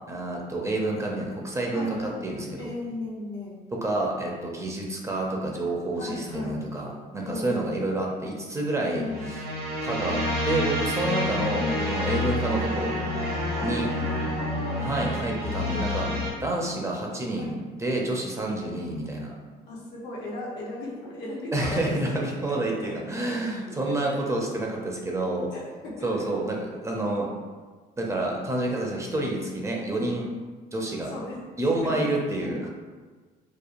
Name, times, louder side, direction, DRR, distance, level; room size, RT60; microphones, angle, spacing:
voice 1, 0.1-2.0 2.2-2.7 3.7-6.9 7.1-9.0 9.8-10.2 10.4-13.0 13.6-13.9 14.8-16.1 16.4-19.3 21.5-25.5 26.0-27.3 28.0-30.3 30.7-31.1 31.6-32.7, right 2 dB, 15° right, -1 dB, 0.4 m, -28 dB
voice 2, 1.7-2.3 2.6-3.6 5.9-6.6 7.2-7.8 8.8-9.4 11.4-11.8 13.6-15.0 17.3-17.6 19.7-22.2 22.5-23.0 23.8-24.2 25.5-26.3 31.1-31.4 31.8-32.7, left 2 dB, 85° left, -4 dB, 0.7 m, -36 dB
sound 1, 9.0-16.3, left 1 dB, 75° right, 1.0 m, -28 dB
2.8 x 2.1 x 2.4 m, 1.4 s
cardioid pair, 110°, 17 cm